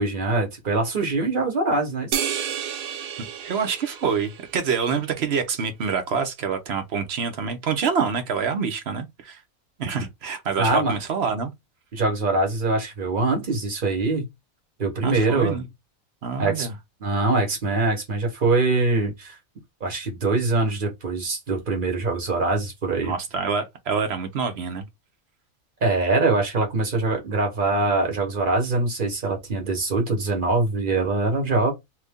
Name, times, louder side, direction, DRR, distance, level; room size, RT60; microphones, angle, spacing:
voice 1, 0.0-2.2 10.6-10.9 11.9-14.3 14.8-15.6 16.4-16.7 17.0-19.3 19.8-23.1 25.8-31.7, right 3 dB, 40° right, 1.3 m, -23 dB
sound 1, 2.1-4.8, right 9 dB, 70° right, 0.5 m, -31 dB
voice 2, 3.4-9.4 9.8-11.5 15.0-15.6 16.2-16.7 23.0-24.8, right 6 dB, 55° right, 0.9 m, -26 dB
2.8 x 2.6 x 3.5 m
omnidirectional pair, 1.5 m